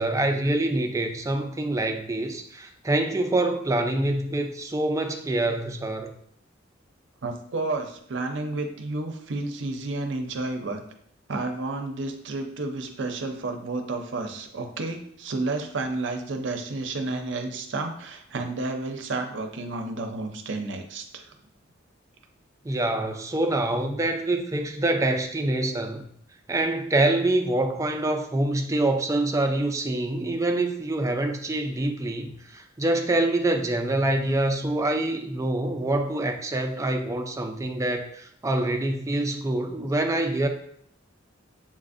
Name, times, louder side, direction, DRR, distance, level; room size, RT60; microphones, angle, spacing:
voice 1, 0.0-6.1 22.6-26.0 26.5-40.5, right 2 dB, 15° right, 4 dB, 0.4 m, -25 dB
voice 2, 7.2-10.8 11.3-21.3, right 2 dB, 65° right, 5 dB, 0.6 m, -31 dB
7.2 x 2.5 x 2.5 m, 0.68 s
head